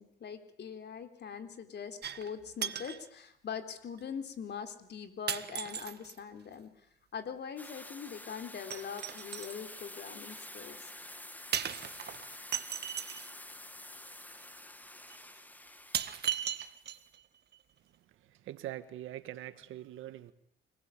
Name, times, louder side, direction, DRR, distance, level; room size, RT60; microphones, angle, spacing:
voice 1, 0.0-6.7 7.1-10.9, left 7 dB, 60° left, 4.0 m, -42 dB
sound 1, 2.0-2.3 2.6-3.0 4.0-4.1 5.3-6.2 8.7-9.6 11.5-13.3 14.4-14.5 15.1-15.2 15.9-17.2 17.5-17.6, right 9 dB, 55° right, 1.7 m, -37 dB
sound 2, 7.6-17.0, left 1 dB, 10° left, 1.8 m, -49 dB
voice 2, 17.9-20.3, right 13 dB, 90° right, 1.7 m, -44 dB
26.5 x 20.0 x 8.6 m
cardioid pair, 90°, 20 cm